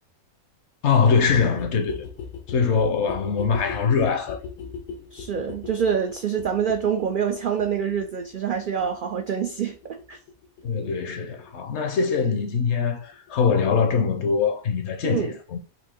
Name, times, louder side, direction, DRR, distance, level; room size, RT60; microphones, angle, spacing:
voice 1, 0.8-2.1 2.5-4.4 10.6-15.6, left 5 dB, 60° left, 0.9 m, -23 dB
sound 1, 1.2-12.7 13.0-13.1 13.3-13.4 13.6-13.7 13.9-14.0 14.2-14.3 14.5-14.6, left 6 dB, 85° left, 1.2 m, -40 dB
voice 2, 5.1-10.2 15.0-15.4, right 7 dB, 75° right, 0.4 m, -26 dB
4.2 x 2.6 x 4.3 m
omnidirectional pair, 1.4 m